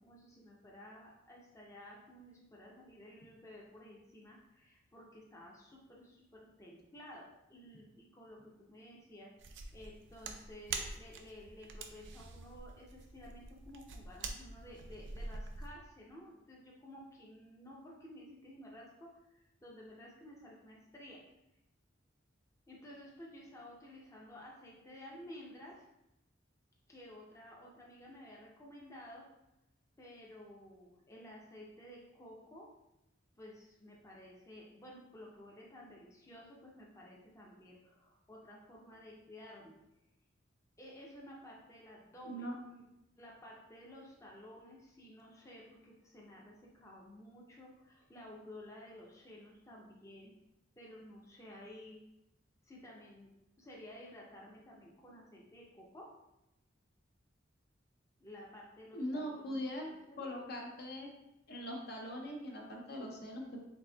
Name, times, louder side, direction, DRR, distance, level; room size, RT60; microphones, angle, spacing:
voice 1, 0.0-9.3 9.7-21.2 22.7-25.9 26.9-29.3 30.0-32.7 33.4-39.7 40.8-42.8 43.2-50.3 50.8-52.0 52.6-56.1 58.2-60.3, left 1 dB, 15° left, -3 dB, 0.6 m, -53 dB
sound 1, 9.4-15.7, right 4 dB, 65° right, 0.4 m, -45 dB
voice 2, 42.2-42.5 58.9-59.9 60.2-61.1 61.5-63.6, equal, 55° left, 0 dB, 0.7 m, -41 dB
4.0 x 3.4 x 2.3 m, 0.89 s
head